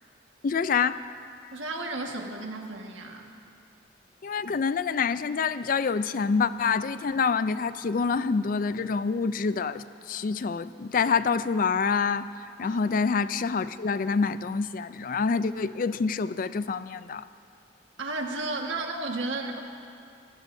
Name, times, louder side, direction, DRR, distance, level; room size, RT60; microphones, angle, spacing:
voice 1, 0.4-1.0 4.2-12.3 12.6-17.3, left 5 dB, 45° left, 14 dB, 0.4 m, -26 dB
voice 2, 1.5-3.3 12.6-12.8 18.0-19.6, right 2 dB, 90° right, 1 dB, 1.6 m, -33 dB
25.0 x 15.5 x 2.7 m, 2.4 s
head